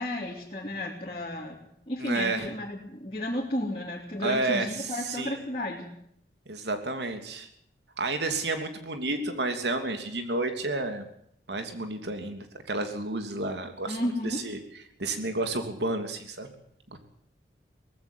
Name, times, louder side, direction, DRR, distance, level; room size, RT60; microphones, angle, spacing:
voice 1, 0.0-1.6 1.9-5.9 13.9-14.4, left 1 dB, 30° left, -5 dB, 3.1 m, -33 dB
voice 2, 2.0-2.5 4.2-5.4 6.5-7.5 8.0-11.0 11.5-14.0 14.2-14.6 15.0-16.5 16.9-17.0, right 2 dB, 75° right, 6 dB, 3.1 m, -31 dB
19.5 x 15.5 x 9.2 m, 0.70 s
head